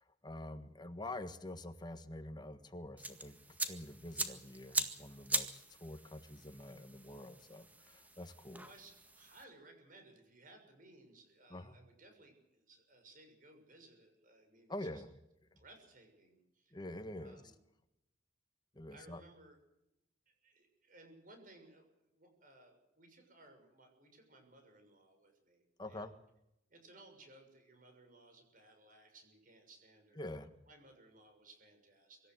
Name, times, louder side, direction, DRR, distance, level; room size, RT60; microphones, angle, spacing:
voice 1, 0.0-8.7 11.5-11.7 14.7-15.1 15.5-15.6 16.7-17.4 18.7-19.2 25.8-26.1 30.1-30.5, left 1 dB, 20° left, 9 dB, 1.5 m, -47 dB
sound 1, 3.0-9.4, right 2 dB, 10° right, 1.8 m, -42 dB
voice 2, 8.6-15.0 15.5-16.7 17.2-17.5 18.9-19.6 20.3-26.2 26.7-32.3, right 2 dB, 45° right, 5 dB, 6.6 m, -61 dB
25.5 x 14.5 x 8.0 m, 0.86 s
head